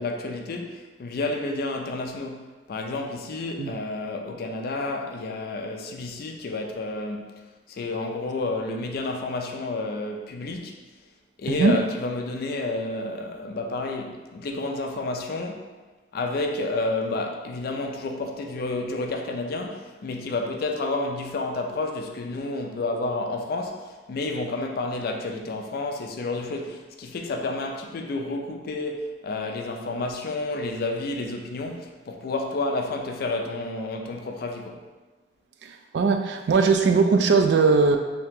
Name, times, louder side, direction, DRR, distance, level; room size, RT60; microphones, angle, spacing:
voice 1, 0.0-7.4 7.7-10.8 11.4-15.7 16.1-34.8, left 2 dB, 60° left, 0.4 m, -30 dB
voice 2, 35.9-38.0, right 4 dB, 70° right, 0.3 m, -19 dB
2.8 x 2.8 x 3.5 m
head